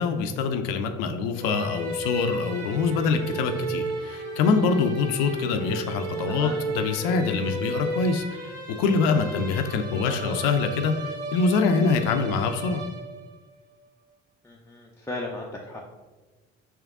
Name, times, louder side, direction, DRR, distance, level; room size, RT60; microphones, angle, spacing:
voice 1, 0.0-12.8, left 4 dB, 80° left, 7 dB, 0.5 m, -25 dB
sound 1, 1.3-13.4, right 2 dB, 80° right, 0.8 m, -34 dB
voice 2, 6.3-6.6 10.1-10.4 14.4-15.8, left 2 dB, 10° left, -2 dB, 0.4 m, -36 dB
3.6 x 3.0 x 3.5 m, 1.3 s
hypercardioid pair, 65°, 35 cm